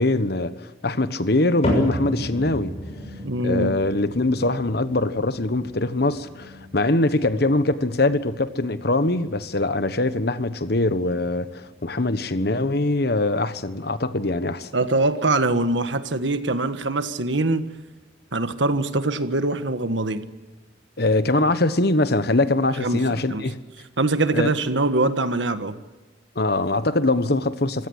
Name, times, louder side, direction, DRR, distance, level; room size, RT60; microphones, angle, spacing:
voice 1, 0.0-2.7 3.4-14.7 21.0-23.6 24.3-24.5 26.3-27.9, left 2 dB, 60° left, 1.2 m, -22 dB
sound 1, 1.6-18.0 18.3-18.8 19.4-19.5 20.3-20.4, equal, 35° left, 6.9 m, -35 dB
voice 2, 3.2-3.7 14.7-17.7 18.3-20.2 22.8-23.4 24.0-25.8, right 2 dB, 80° right, 1.5 m, -23 dB
25.5 x 16.5 x 8.0 m
head